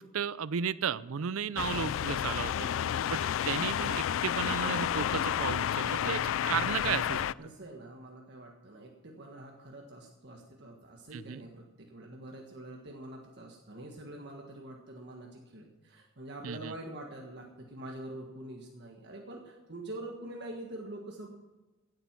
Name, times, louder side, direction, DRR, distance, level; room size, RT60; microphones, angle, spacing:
voice 1, 0.0-2.7 3.1-7.3 11.1-11.4 16.4-16.7, right 7 dB, 85° right, 18 dB, 0.5 m, -34 dB
sound 1, 1.6-7.3, left 9 dB, 70° left, 0.3 m, -31 dB
voice 2, 2.5-3.1 7.4-21.3, right 1 dB, 55° right, 0 dB, 1.6 m, -45 dB
17.0 x 7.9 x 6.0 m, 1.1 s
head